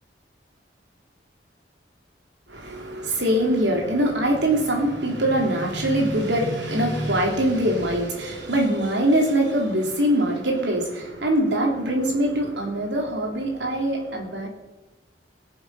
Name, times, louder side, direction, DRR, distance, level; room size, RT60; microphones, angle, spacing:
voice 1, 2.5-14.5, right 1 dB, 75° right, 1 dB, 3.1 m, -23 dB
21.5 x 7.2 x 5.5 m, 1.1 s
head